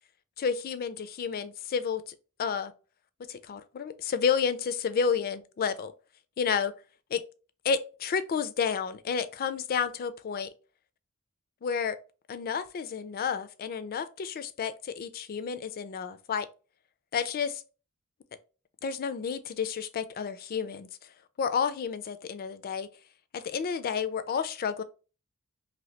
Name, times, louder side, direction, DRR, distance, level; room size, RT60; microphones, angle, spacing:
voice 1, 0.4-2.0 2.4-2.7 3.3-5.9 6.4-6.7 7.1-7.2 7.6-10.5 11.6-12.0 12.3-16.5 17.1-17.6 18.8-20.9 21.4-22.9 23.3-24.8, left 6 dB, 45° left, 0.3 m, -30 dB
2.8 x 2.7 x 3.1 m
head